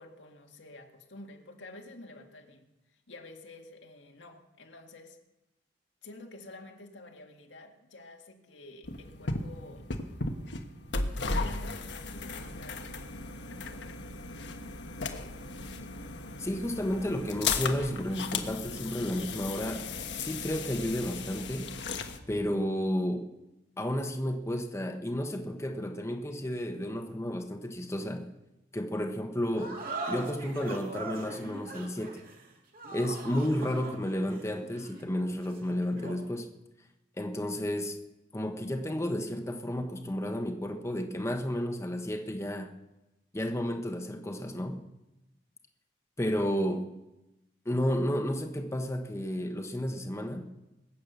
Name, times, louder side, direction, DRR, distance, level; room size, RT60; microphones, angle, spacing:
voice 1, 0.0-5.2 6.0-9.9 10.3-10.5 11.2-12.9, left 2 dB, 85° left, 2.0 m, -50 dB
sound 1, 8.8-22.2, left 4 dB, 70° left, 1.3 m, -36 dB
voice 2, 16.4-19.9 20.2-21.8 22.3-23.3 23.8-28.3 28.7-29.8 30.1-32.2 32.9-36.5 37.2-38.0 38.3-42.7 43.3-44.8 46.2-46.9 47.6-50.5, equal, 15° left, 1.1 m, -32 dB
sound 2, 29.6-36.3, right 2 dB, 55° right, 2.8 m, -41 dB
22.0 x 8.5 x 6.8 m
head